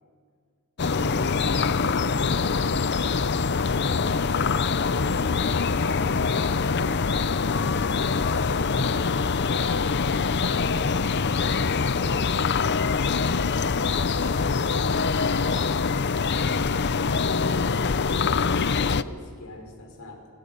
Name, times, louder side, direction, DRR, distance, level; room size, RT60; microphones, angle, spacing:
voice 1, 0.8-10.9 14.7-20.3, equal, 80° left, 4 dB, 5.2 m, -43 dB
sound 1, 0.8-19.0, left 4 dB, 50° left, 0.6 m, -24 dB
28.0 x 27.5 x 6.9 m, 2.1 s
head